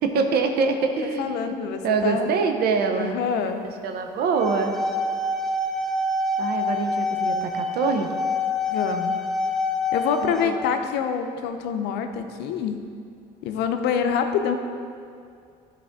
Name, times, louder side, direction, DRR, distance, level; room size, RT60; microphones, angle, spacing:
voice 1, 0.0-1.4 1.8-3.2 3.8-4.7 6.4-8.1 10.2-10.5, right 5 dB, 65° right, 5 dB, 0.7 m, -24 dB
voice 2, 1.2-2.3 3.0-3.7 8.7-9.2 9.9-12.8 13.4-14.6, left 7 dB, 85° left, 7 dB, 0.6 m, -26 dB
sound 1, 4.2-10.4, left 2 dB, ahead, 0.5 m, -26 dB
11.5 x 4.2 x 3.6 m, 2.3 s
cardioid pair, 110°, 17 cm